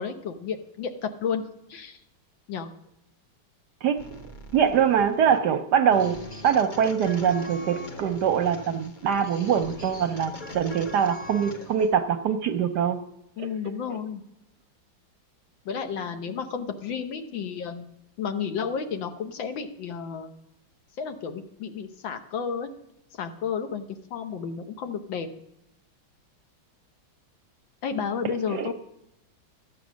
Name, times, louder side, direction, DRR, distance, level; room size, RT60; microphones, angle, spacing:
voice 1, 0.0-2.0 2.5-2.7 13.4-14.2 15.7-17.8 18.2-20.3 21.0-22.7 23.2-23.8 24.1-25.3 27.8-28.7, left 6 dB, 70° left, 7 dB, 1.7 m, -32 dB
sound 1, 4.0-11.9, left 1 dB, 45° left, 0.6 m, -41 dB
voice 2, 4.5-6.2 6.4-13.0 13.4-13.5 13.9-14.0 28.5-28.7, right 8 dB, 65° right, 8 dB, 1.1 m, -23 dB
13.0 x 8.7 x 6.2 m, 0.82 s
omnidirectional pair, 2.3 m